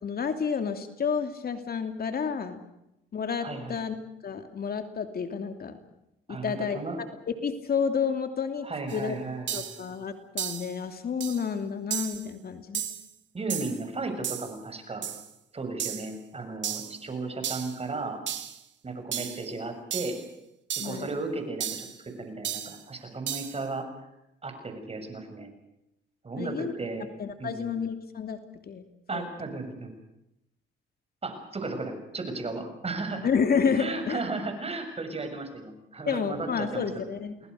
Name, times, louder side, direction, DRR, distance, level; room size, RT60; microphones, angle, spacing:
voice 1, 0.0-2.6 3.1-4.0 4.2-5.7 6.3-6.8 7.4-8.7 8.9-9.2 9.5-12.8 20.8-21.1 26.4-26.7 27.2-28.4 28.7-28.8 29.1-29.3 33.2-34.2 36.1-37.4, left 6 dB, 50° left, 7 dB, 2.9 m, -30 dB
voice 2, 3.4-3.8 6.3-7.0 8.6-9.7 13.3-15.1 15.5-18.2 18.8-20.2 20.8-23.9 24.4-25.5 26.2-27.1 27.4-27.8 29.1-29.9 31.2-33.3 33.8-37.0, right 3 dB, 30° right, 6 dB, 7.0 m, -35 dB
sound 1, 8.9-9.0 9.5-9.8 10.4-10.7 11.2-11.5 11.9-12.3 12.7-13.1 13.5-13.8 14.2-14.5 15.0-15.3 15.8-16.1 16.6-17.0 17.4-17.8 18.3-18.6 19.1-19.4 19.9-20.2 20.7-21.0 21.6-21.9 22.4-22.8 23.3-23.6, right 10 dB, 70° right, 2.9 m, -34 dB
29.5 x 20.0 x 6.6 m, 0.86 s
cardioid pair, 90°, 20 cm